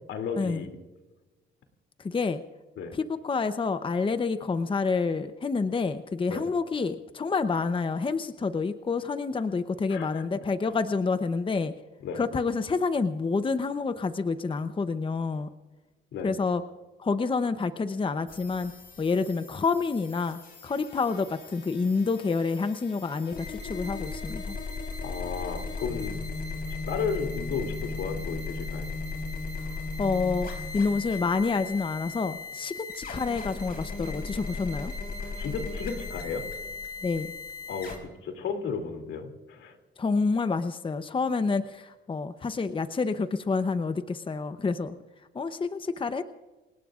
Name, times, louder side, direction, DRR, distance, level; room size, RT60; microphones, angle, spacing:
voice 1, 0.1-0.8 2.8-2.9 6.3-6.4 9.9-10.2 12.0-12.2 16.1-16.3 25.0-26.2 26.7-28.9 35.4-36.4 37.7-39.8, left 5 dB, 80° left, 5 dB, 2.9 m, -34 dB
voice 2, 2.0-2.4 2.9-11.7 12.1-15.5 16.2-16.6 17.0-18.7 19.0-24.6 29.6-34.9 37.0-37.3 40.0-44.9 45.3-46.2, left 4 dB, 25° left, 10 dB, 0.8 m, -28 dB
sound 1, 18.3-38.0, left 3 dB, 50° left, 3.9 m, -37 dB
29.0 x 18.5 x 2.5 m, 1.2 s
cardioid pair, 90°, 20 cm